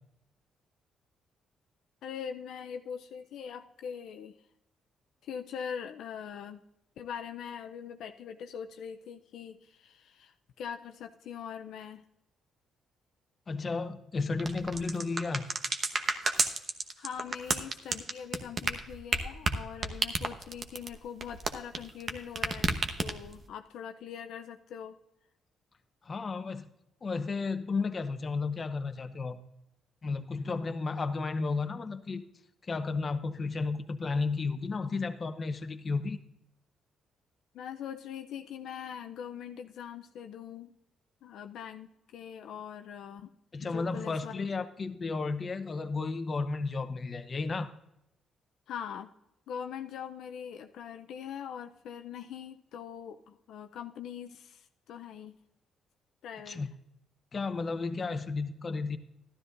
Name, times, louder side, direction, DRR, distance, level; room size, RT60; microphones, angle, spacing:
voice 1, 2.0-4.4 5.2-6.6 7.0-12.0 17.0-25.0 37.5-40.7 41.2-43.3 43.6-44.5 44.8-44.9 48.7-49.1 49.5-55.4 56.2-56.6, left 8 dB, 80° left, 6 dB, 0.6 m, -42 dB
voice 2, 13.5-15.5 26.0-26.7 27.0-29.4 30.0-32.2 32.7-36.2 43.5-47.7 56.5-56.7 57.3-59.0, left 4 dB, 35° left, 9 dB, 0.8 m, -33 dB
sound 1, 14.4-22.1 22.4-23.4, right 3 dB, 40° right, 1.0 m, -30 dB
12.5 x 12.5 x 2.6 m, 0.83 s
cardioid pair, 90°, 0 cm